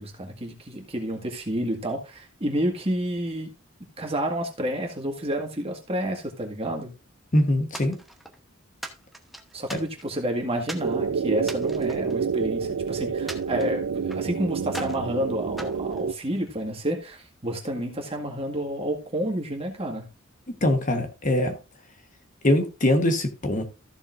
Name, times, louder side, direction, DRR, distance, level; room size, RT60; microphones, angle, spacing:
voice 1, 0.0-3.5 4.0-6.9 9.5-20.1, right 1 dB, 30° right, 1.8 m, -29 dB
voice 2, 7.3-8.0 9.7-9.8 20.6-21.6 22.4-23.6, left 1 dB, 40° left, 1.3 m, -22 dB
sound 1, 7.7-8.4 8.8-10.2 10.7-10.9 11.4-12.7 13.3-14.3 14.7-15.1 15.6-16.6, right 1 dB, ahead, 1.0 m, -40 dB
sound 2, 10.8-16.1, right 6 dB, 85° right, 0.4 m, -28 dB
14.0 x 7.1 x 2.6 m
head